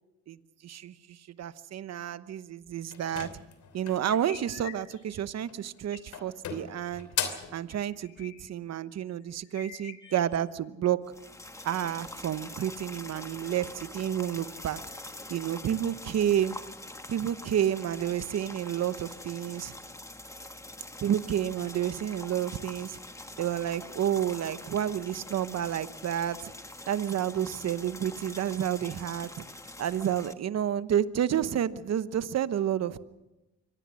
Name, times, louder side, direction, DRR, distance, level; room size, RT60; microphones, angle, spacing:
voice 1, 0.3-3.3 3.7-7.1 7.5-11.0 11.6-14.8 15.3-16.6 17.1-19.7 21.0-23.0 23.4-26.5 26.9-29.3 29.8-33.0, right 10 dB, 60° right, 14 dB, 1.0 m, -30 dB
sound 1, 2.9-4.1 5.4-5.8 6.1-7.6, left 8 dB, 70° left, 3.1 m, -36 dB
sound 2, 4.1-5.4 5.9-6.1 7.7-8.5 9.1-9.2 9.5-10.4, left 8 dB, 90° left, 2.7 m, -47 dB
sound 3, 11.1-30.3, left 1 dB, 10° left, 1.3 m, -45 dB
24.5 x 18.0 x 6.3 m, 1.0 s
cardioid pair, 90°, 30 cm